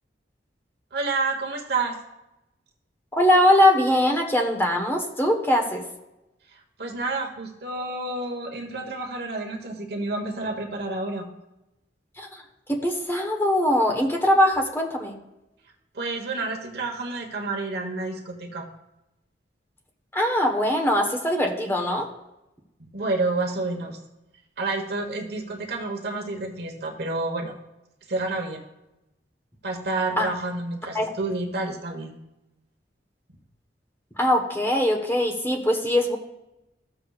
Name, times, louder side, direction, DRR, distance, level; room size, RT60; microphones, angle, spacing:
voice 1, 0.9-2.0 6.8-11.3 15.9-18.7 22.8-24.0 24.6-27.5 28.1-28.6 29.6-32.1, right 3 dB, 60° right, 2 dB, 1.2 m, -29 dB
voice 2, 3.1-5.8 12.2-12.3 12.7-15.2 20.1-22.1 30.2-30.3 30.9-31.1 34.2-36.2, left 1 dB, 15° left, 1 dB, 1.1 m, -21 dB
14.5 x 6.9 x 2.4 m, 0.93 s
head